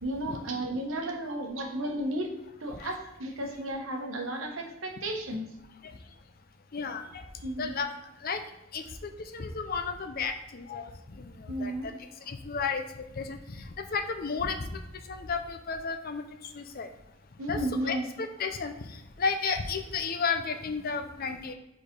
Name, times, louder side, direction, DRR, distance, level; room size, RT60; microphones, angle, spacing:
voice 1, 0.0-2.3 2.6-5.5 7.4-7.8 11.5-11.9 17.4-18.1, right 1 dB, 85° right, 2 dB, 1.2 m, -33 dB
voice 2, 6.7-7.2 7.6-7.9 8.2-8.4 8.7-11.9 12.3-12.8 13.2-14.8 15.1-16.9 17.5-21.5, left 5 dB, 50° left, 8 dB, 0.6 m, -33 dB
5.0 x 4.2 x 5.2 m, 0.90 s
head